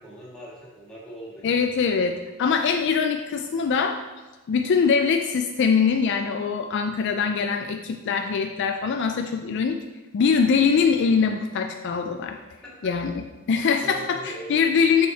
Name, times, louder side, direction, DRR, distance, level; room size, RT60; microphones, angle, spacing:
voice 1, 0.0-1.6 12.6-12.9 13.8-14.5, right 1 dB, 5° left, -7 dB, 1.6 m, -40 dB
voice 2, 1.4-4.0 4.5-9.8 10.1-12.4 12.8-15.1, left 5 dB, 55° left, 5 dB, 0.3 m, -23 dB
6.4 x 4.2 x 4.2 m, 1.1 s
head